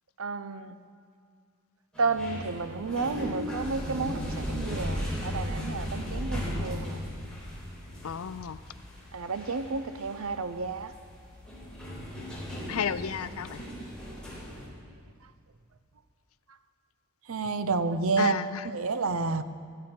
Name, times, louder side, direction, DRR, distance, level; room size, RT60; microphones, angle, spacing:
voice 1, 0.2-0.8 2.0-7.0 9.1-10.9 17.3-18.3 18.6-19.4, right 4 dB, 75° right, 0.7 m, -30 dB
sound 1, 1.9-14.7, equal, 5° left, 4.4 m, -36 dB
voice 2, 8.0-8.6 12.7-13.6 18.2-18.7, left 7 dB, 80° left, 0.5 m, -32 dB
16.5 x 13.0 x 4.4 m
head